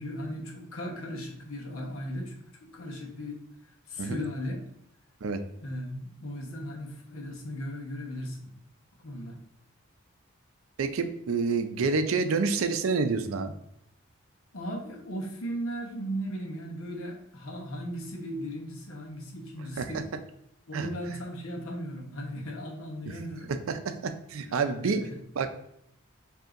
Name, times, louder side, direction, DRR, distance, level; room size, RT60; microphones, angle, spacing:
voice 1, 0.0-3.4 3.9-4.6 5.6-8.5 9.0-9.4 14.5-20.1 20.7-23.5 24.4-25.2, equal, 75° left, 1 dB, 1.0 m, -37 dB
voice 2, 10.8-13.5 19.8-19.9 20.7-20.9 23.7-25.0 25.4-25.5, right 4 dB, 75° right, 9 dB, 0.4 m, -28 dB
7.6 x 2.7 x 2.5 m, 0.77 s
head